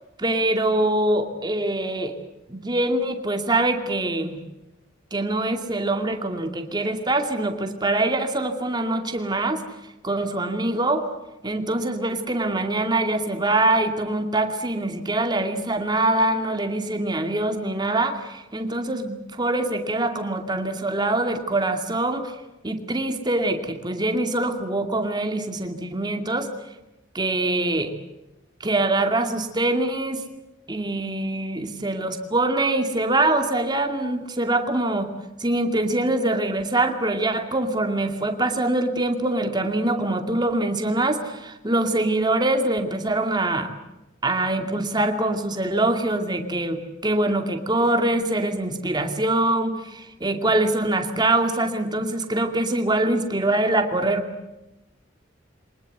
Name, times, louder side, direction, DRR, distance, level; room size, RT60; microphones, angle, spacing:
voice 1, 0.2-2.1 2.5-4.4 5.1-9.6 10.0-11.1 11.4-22.3 22.6-26.5 27.1-27.9 28.6-30.2 30.7-35.1 35.4-43.7 44.2-54.2, right 2 dB, 20° right, 5 dB, 2.5 m, -24 dB
24.5 x 20.0 x 8.2 m, 0.97 s
head